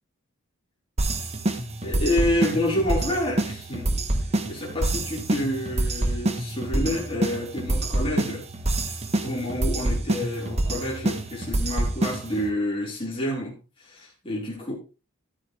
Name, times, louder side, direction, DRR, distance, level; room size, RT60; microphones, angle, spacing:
sound 1, 1.0-12.5, right 1 dB, 30° right, 1.3 m, -27 dB
voice 1, 1.8-4.0 4.5-8.5 9.2-14.7, left 1 dB, 25° left, 4.8 m, -28 dB
13.5 x 8.0 x 3.4 m
head